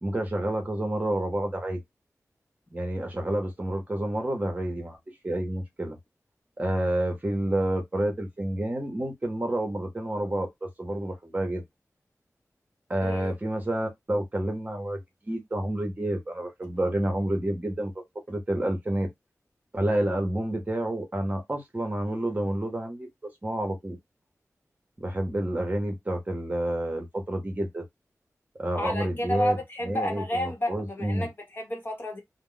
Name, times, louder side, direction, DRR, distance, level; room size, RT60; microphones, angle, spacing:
voice 1, 0.0-1.8 2.7-5.0 5.2-6.0 6.6-11.6 12.9-19.1 19.7-23.1 23.4-24.0 25.0-27.8 28.6-29.6 29.8-31.3, right 1 dB, 30° right, 0.8 m, -29 dB
voice 2, 13.0-13.3 28.8-32.2, left 1 dB, 40° left, 1.0 m, -31 dB
2.2 x 2.0 x 3.7 m
wide cardioid pair, 85°, 6 cm